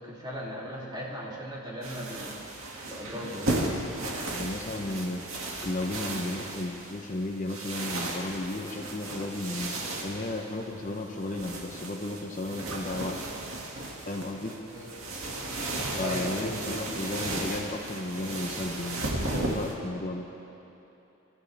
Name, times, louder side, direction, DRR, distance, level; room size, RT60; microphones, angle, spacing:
voice 1, 0.0-2.4 2.9-3.5 14.7-14.9 16.0-16.5, equal, 20° right, -6 dB, 2.9 m, -38 dB
sound 1, 1.8-19.7, right 2 dB, 70° right, 2.1 m, -35 dB
voice 2, 4.3-5.2 5.6-9.7 10.0-13.2 14.1-14.6 16.0-20.3, left 2 dB, 35° left, 2 dB, 0.8 m, -34 dB
26.5 x 13.5 x 3.5 m, 2.9 s
head